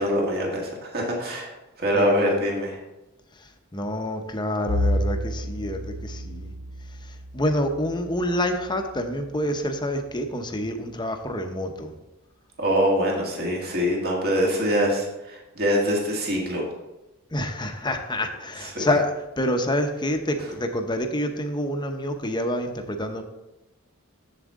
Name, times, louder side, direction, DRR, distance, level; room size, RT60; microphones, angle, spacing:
voice 1, 0.0-1.5 1.8-2.8 12.6-16.6 18.6-18.9, equal, 50° right, -1 dB, 1.8 m, -24 dB
voice 2, 1.9-2.4 3.4-6.5 7.0-11.9 17.3-23.2, left 1 dB, 20° left, 5 dB, 0.7 m, -27 dB
Bowed string instrument, 4.7-9.3, equal, 85° right, 1.4 m, -30 dB
7.4 x 7.4 x 3.6 m, 0.98 s
head